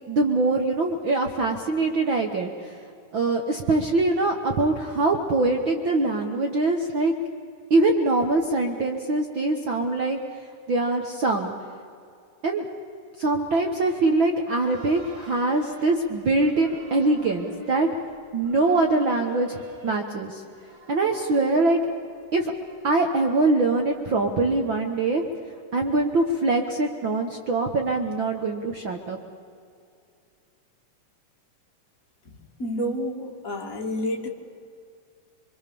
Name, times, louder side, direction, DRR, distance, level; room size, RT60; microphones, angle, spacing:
voice 1, 0.1-2.8 3.1-7.1 7.7-11.5 12.4-12.7 13.2-17.9 18.3-20.4 20.9-21.8 22.3-22.5 22.8-25.2 25.7-29.2, right 2 dB, 55° right, 2 dB, 1.4 m, -23 dB
sound 1, 13.8-24.6, right 1 dB, 20° right, 5.0 m, -50 dB
voice 2, 32.3-34.3, equal, 30° left, 0 dB, 2.0 m, -30 dB
25.0 x 24.0 x 7.0 m, 2.4 s
omnidirectional pair, 3.8 m